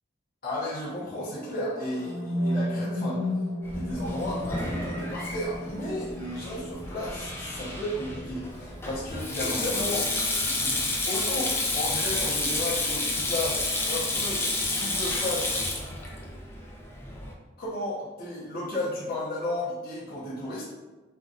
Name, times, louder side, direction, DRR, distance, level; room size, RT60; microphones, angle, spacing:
voice 1, 0.4-3.3 3.7-14.4 14.7-15.7 17.6-20.6, left 1 dB, 55° left, -9 dB, 1.0 m, -33 dB
sound 1, 1.5-9.5, left 1 dB, 80° right, 1.2 m, -34 dB
Sink (filling or washing), 3.6-17.3, left 2 dB, 15° left, 0.5 m, -30 dB
5.8 x 2.5 x 2.4 m, 1.2 s
head